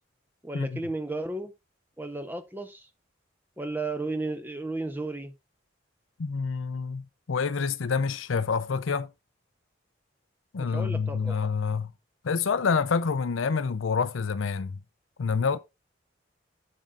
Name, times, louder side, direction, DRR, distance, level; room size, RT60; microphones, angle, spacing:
voice 1, 0.4-1.5 2.0-2.9 3.6-5.3 10.6-11.4, right 2 dB, 10° right, 0.8 m, -33 dB
voice 2, 6.2-9.1 10.5-11.9 12.2-14.8 15.2-15.6, left 5 dB, 90° left, 0.6 m, -27 dB
10.5 x 7.8 x 2.5 m
head